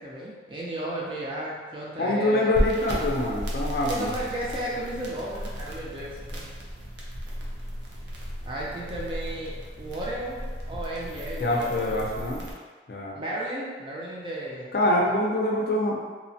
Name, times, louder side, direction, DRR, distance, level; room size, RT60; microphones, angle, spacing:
voice 1, 0.0-2.5 3.9-6.5 8.5-10.4 10.7-12.1 13.1-15.1, right 1 dB, 30° right, -5 dB, 0.4 m, -34 dB
voice 2, 2.0-4.1 11.4-12.4 12.9-13.2 14.7-16.0, left 1 dB, 55° left, -2 dB, 0.4 m, -25 dB
sound 1, 2.5-12.5, equal, 85° right, 0.5 m, -34 dB
2.9 x 2.1 x 2.7 m, 1.5 s
head